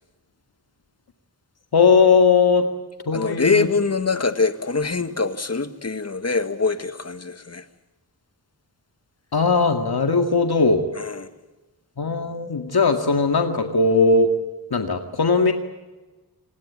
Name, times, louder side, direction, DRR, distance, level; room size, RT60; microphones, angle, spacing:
voice 1, 1.7-2.7 3.1-3.7 9.3-10.8 12.0-14.3 14.7-15.5, left 4 dB, 65° left, 2.1 m, -18 dB
voice 2, 3.1-7.6 11.0-11.3, left 4 dB, 40° left, 1.7 m, -24 dB
27.0 x 20.0 x 8.7 m
wide cardioid pair, 75°, 40 cm